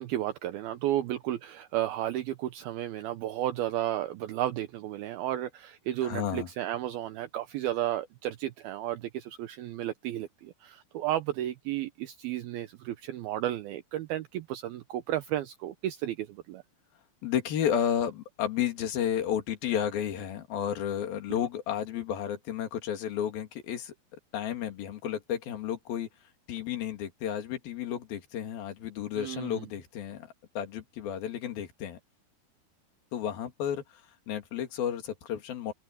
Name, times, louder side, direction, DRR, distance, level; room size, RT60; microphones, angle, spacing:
voice 1, 0.0-16.6 29.2-29.7, right 13 dB, 75° right, 2.6 m, -33 dB
voice 2, 6.0-6.5 17.2-23.9 24.3-26.1 26.5-30.3 30.6-32.0 33.1-33.8 34.3-35.7, left 9 dB, 65° left, 4.1 m, -32 dB
open air
omnidirectional pair, 4.7 m